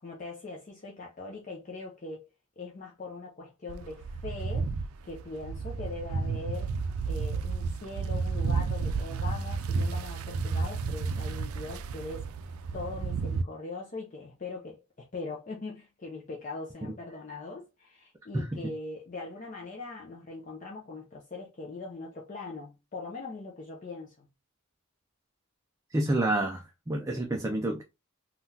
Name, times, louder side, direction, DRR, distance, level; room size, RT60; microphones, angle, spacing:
voice 1, 0.0-2.3 2.6-4.7 5.0-6.8 7.1-12.3 12.7-24.3, left 3 dB, 35° left, 0.5 m, -41 dB
sound 1, 3.7-13.4, right 4 dB, 90° right, 0.4 m, -32 dB
voice 2, 25.9-27.8, right 1 dB, 15° right, 0.3 m, -29 dB
3.7 x 2.3 x 2.7 m
head